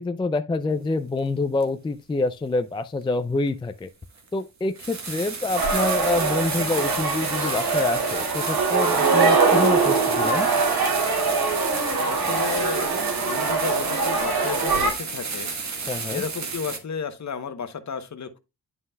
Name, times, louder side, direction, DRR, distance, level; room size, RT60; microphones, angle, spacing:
voice 1, 0.0-3.9 4.3-10.5 15.9-16.2, left 2 dB, 15° left, 0.3 m, -27 dB
sound 1, 1.6-1.7 3.5-3.6 4.2-4.3 4.7-16.8, right 4 dB, 50° right, 1.4 m, -32 dB
sound 2, 5.6-14.9, right 4 dB, 85° right, 2.5 m, -23 dB
voice 2, 12.1-15.5 16.1-18.4, left 6 dB, 50° left, 1.0 m, -33 dB
9.5 x 5.6 x 2.3 m
wide cardioid pair, 105°, 36 cm